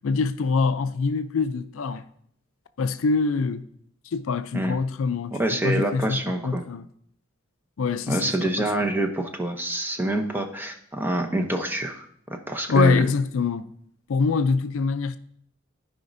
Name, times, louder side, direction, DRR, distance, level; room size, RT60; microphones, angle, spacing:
voice 1, 0.0-2.0 2.8-3.7 4.1-5.4 5.6-6.9 7.8-8.7 12.7-13.7 14.1-15.2, left 4 dB, 70° left, 0.4 m, -24 dB
voice 2, 5.4-6.6 8.1-12.0 12.3-13.1, right 1 dB, 10° right, 0.7 m, -26 dB
14.0 x 5.1 x 2.6 m
head